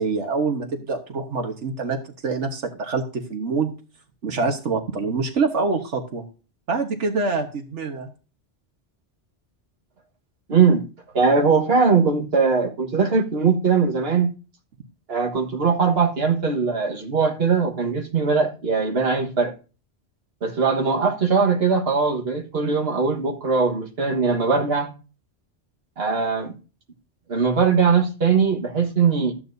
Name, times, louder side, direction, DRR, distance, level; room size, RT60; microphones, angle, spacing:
voice 1, 0.0-3.7 4.2-6.2 6.7-8.1, right 4 dB, 80° right, 1.6 m, -25 dB
voice 2, 10.5-10.9 11.1-14.3 15.1-19.5 20.4-24.9 26.0-26.5 27.3-29.3, right 5 dB, 60° right, 1.8 m, -20 dB
14.0 x 8.7 x 2.7 m
omnidirectional pair, 1.2 m